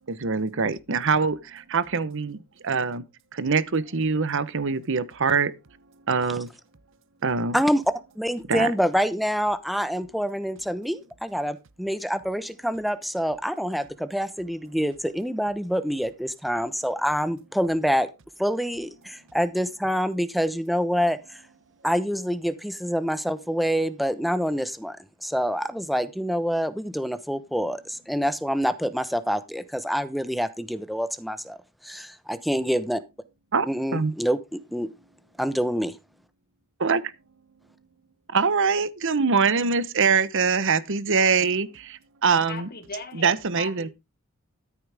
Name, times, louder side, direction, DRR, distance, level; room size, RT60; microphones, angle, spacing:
voice 1, 0.1-3.0 3.3-5.5 6.1-6.5 7.2-7.6 8.5-8.7 33.5-33.7 33.9-34.1 36.8-37.0 38.3-42.7 43.1-43.9, right 5 dB, 65° right, 1.0 m, -24 dB
voice 2, 8.2-18.1 18.4-21.4 21.8-25.0 25.2-31.6 31.8-33.0 33.6-34.9 35.4-35.9, equal, ahead, 0.9 m, -26 dB
voice 3, 42.5-43.9, left 3 dB, 45° left, 2.1 m, -38 dB
13.5 x 8.5 x 3.5 m
head